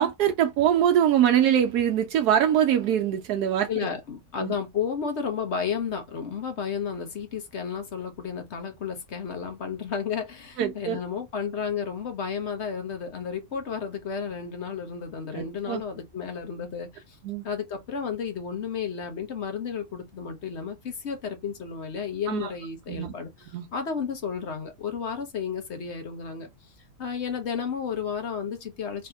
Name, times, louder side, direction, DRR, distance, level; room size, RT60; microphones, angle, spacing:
voice 1, 0.0-3.7 4.4-4.5 10.6-11.0 15.3-15.8 17.2-17.4 22.3-22.5 22.9-23.1 23.5-23.7, right 10 dB, 85° right, 1.2 m, -23 dB
voice 2, 3.7-17.2 17.4-26.5 27.0-29.1, left 6 dB, 50° left, 1.1 m, -32 dB
3.3 x 2.8 x 3.5 m
omnidirectional pair, 1.6 m